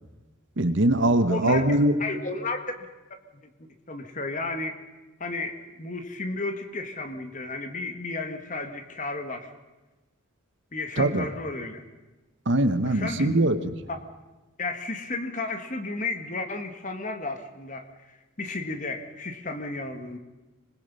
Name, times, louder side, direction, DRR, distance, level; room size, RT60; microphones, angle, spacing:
voice 1, 0.6-1.9 11.0-11.2 12.5-13.6, right 1 dB, 55° right, 10 dB, 1.2 m, -22 dB
voice 2, 1.3-2.9 3.4-3.5 3.9-4.7 5.2-9.5 10.7-11.8 12.8-13.3 13.9-14.0 14.6-20.2, left 3 dB, 35° left, 7 dB, 1.8 m, -33 dB
26.0 x 20.0 x 5.6 m, 1.1 s
head